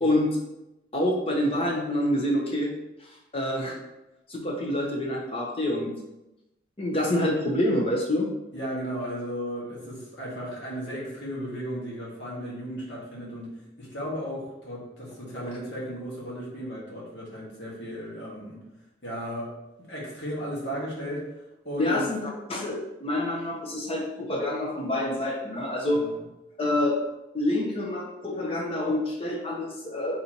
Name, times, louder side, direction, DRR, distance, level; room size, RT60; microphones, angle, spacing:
voice 1, 0.9-2.7 3.0-3.8 4.3-6.0 6.8-8.3 15.4-15.5 21.8-26.1 26.6-27.0 27.3-30.2, left 1 dB, 30° left, 0 dB, 0.8 m, -27 dB
voice 2, 8.5-13.5 13.8-18.6 19.0-21.3 21.6-22.1 25.9-26.1, equal, 80° left, -5 dB, 1.6 m, -35 dB
4.3 x 4.1 x 2.9 m, 0.93 s
head